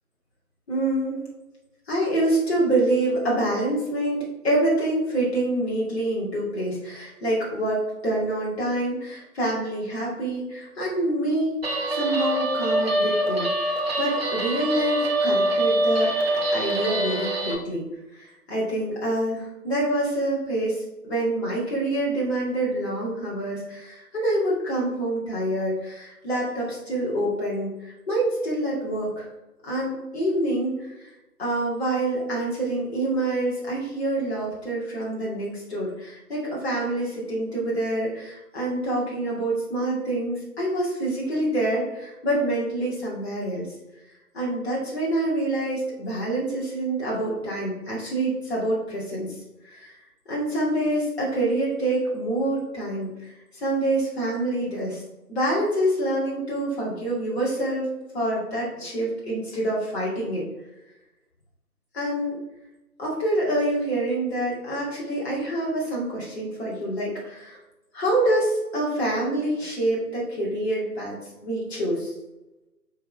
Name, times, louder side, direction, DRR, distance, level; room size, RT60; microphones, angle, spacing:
voice 1, 0.7-1.2 1.9-11.5 11.9-16.1 16.5-17.9 18.2-29.3 29.6-31.1 31.4-43.7 44.3-49.4 49.6-49.9 50.3-55.0 55.3-57.9 58.1-60.4 61.9-62.4 63.0-67.6 68.0-71.2 71.4-72.1, right 1 dB, 40° left, -6 dB, 2.2 m, -26 dB
Guitar, 11.6-17.5, right 1 dB, 40° right, 1.0 m, -24 dB
6.3 x 3.9 x 4.0 m, 0.98 s
figure-of-eight pair, 155°, 48 cm